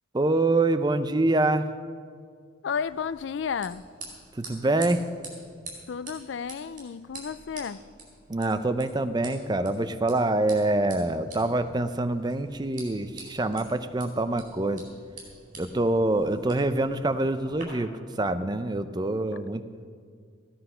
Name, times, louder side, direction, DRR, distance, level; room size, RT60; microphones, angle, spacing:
voice 1, 0.1-1.7 4.4-5.0 8.3-14.8 15.6-17.9 18.2-19.6, right 2 dB, 20° right, 10 dB, 0.5 m, -25 dB
voice 2, 2.6-3.8 5.9-7.8, left 6 dB, 70° left, 16 dB, 0.4 m, -32 dB
sound 1, 2.8-17.6, right 3 dB, 45° right, 4.3 m, -47 dB
16.0 x 10.0 x 5.6 m, 2.1 s
head